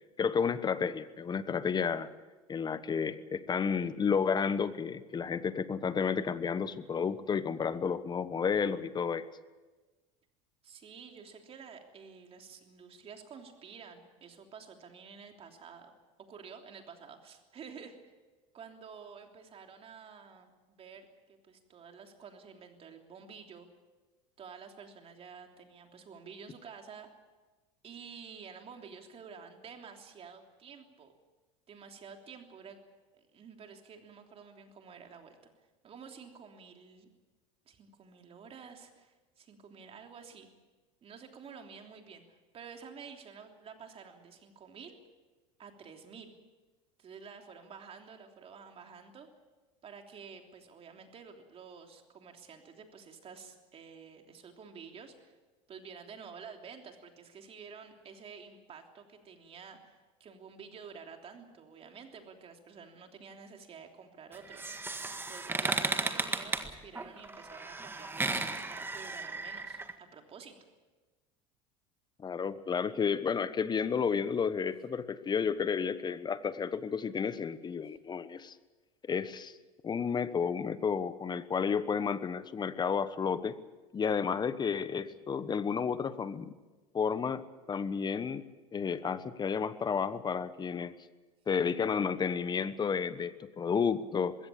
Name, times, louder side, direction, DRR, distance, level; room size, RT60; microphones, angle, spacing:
voice 1, 0.2-2.1 2.5-9.3 72.2-78.6 79.0-79.5 79.8-83.6 83.9-86.5 86.9-90.9 91.5-94.4, left 6 dB, 25° left, 14 dB, 1.2 m, -31 dB
voice 2, 10.6-15.9 16.3-18.0 18.5-23.7 24.4-27.1 27.8-31.1 31.7-32.8 33.3-35.4 35.8-37.1 37.6-40.5 41.0-44.9 45.6-46.3 47.0-49.3 49.8-55.3 55.7-64.7 65.3-70.6, right 6 dB, 35° right, 4 dB, 3.3 m, -50 dB
sound 1, 64.3-69.9, right 3 dB, 15° right, 1.8 m, -35 dB
21.5 x 16.5 x 8.6 m, 1.2 s
hypercardioid pair, 95°, 17 cm